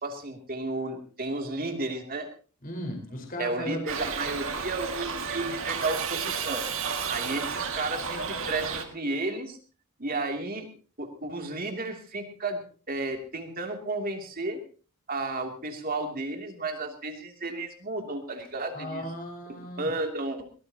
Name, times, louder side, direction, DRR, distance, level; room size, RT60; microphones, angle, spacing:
voice 1, 0.0-2.3 3.4-6.7 7.1-9.6 10.0-10.7 11.0-14.6 15.1-19.1 19.5-20.4, right 2 dB, 40° right, 4 dB, 2.8 m, -33 dB
voice 2, 2.6-3.8 18.7-19.9, equal, 40° left, 2 dB, 4.8 m, -36 dB
Shout / Livestock farm animals working animals, 3.9-8.8, right 6 dB, 60° right, 2.2 m, -32 dB
22.5 x 19.0 x 2.9 m, 0.38 s
head